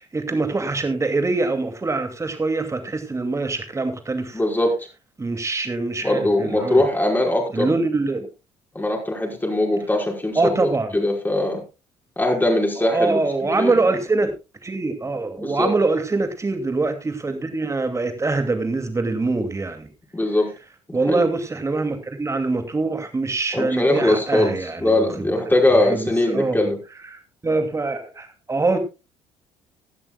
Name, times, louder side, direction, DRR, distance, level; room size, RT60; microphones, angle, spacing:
voice 1, 0.0-4.4 5.2-6.8 7.5-8.3 10.4-11.0 12.8-14.3 14.6-19.9 20.9-25.3 25.9-26.7 27.0-28.8, right 3 dB, 20° right, 7 dB, 2.4 m, -24 dB
voice 2, 4.3-4.7 6.0-7.7 8.7-11.6 12.2-13.7 15.4-15.7 20.1-20.5 20.9-21.2 23.5-26.8, left 1 dB, 15° left, 1 dB, 5.1 m, -21 dB
17.5 x 12.0 x 2.3 m, 0.27 s
figure-of-eight pair, 50°, 14 cm